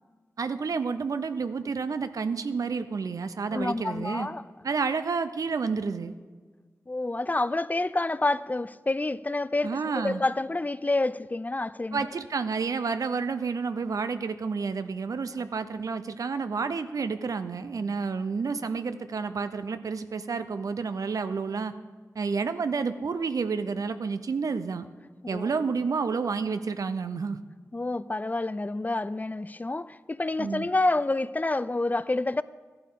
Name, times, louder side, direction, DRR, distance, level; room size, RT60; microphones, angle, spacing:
voice 1, 0.4-4.3 4.6-6.1 9.6-10.2 11.9-21.7 22.2-24.8 25.3-27.4 30.4-30.7, right 5 dB, 75° right, 0.6 m, -30 dB
voice 2, 3.5-4.4 6.9-12.0 25.3-25.6 27.7-32.4, left 2 dB, 30° left, 0.4 m, -28 dB
14.0 x 11.0 x 3.8 m
cardioid pair, 45°, 6 cm